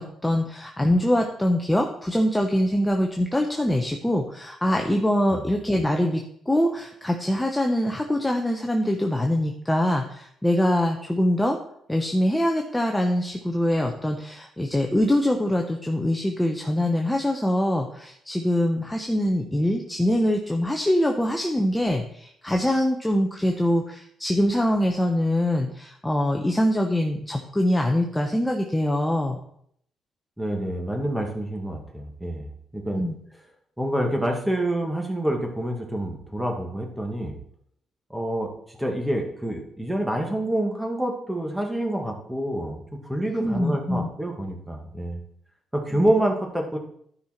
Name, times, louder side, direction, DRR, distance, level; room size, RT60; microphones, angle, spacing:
voice 1, 0.0-11.6 11.9-29.4 32.9-33.1 43.4-44.1 45.9-46.1, left 1 dB, 10° left, 2 dB, 0.9 m, -24 dB
voice 2, 30.4-32.5 32.7-33.1 33.8-37.3 38.1-45.2 45.7-46.8, right 1 dB, 10° right, 1 dB, 2.2 m, -27 dB
12.0 x 5.6 x 4.5 m, 0.68 s
cardioid pair, 90°, 0 cm